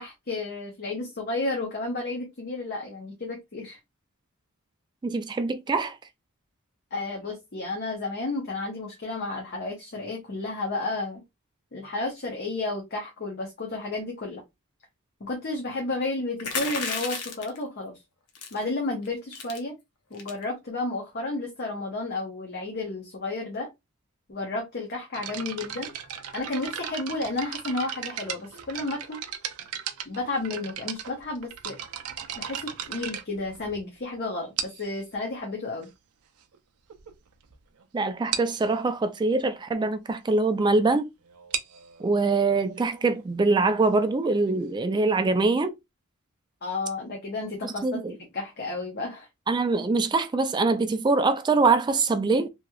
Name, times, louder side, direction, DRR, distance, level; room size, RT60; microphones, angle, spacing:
voice 1, 0.0-3.8 6.9-11.2 11.7-14.4 15.2-18.0 18.5-19.7 20.1-23.7 24.3-25.9 26.3-29.2 30.1-31.8 32.3-34.5 34.8-35.9 46.6-48.0 48.3-49.3, left 2 dB, 50° left, 0.7 m, -32 dB
voice 2, 5.0-6.0 37.9-41.1 42.0-45.7 47.6-48.2 49.5-52.5, right 3 dB, 20° right, 0.3 m, -24 dB
sound 1, 16.4-17.6 18.4-18.6 19.0-19.1 19.3-19.6 20.1-20.4, left 5 dB, 85° left, 0.7 m, -32 dB
sound 2, 25.1-34.0 34.6-35.0 35.8-35.9 36.5-36.6 36.9-37.1 37.4-37.5 37.8-37.9 38.3-38.6 41.3-44.8, right 8 dB, 85° right, 0.5 m, -36 dB
3.0 x 2.8 x 2.3 m
head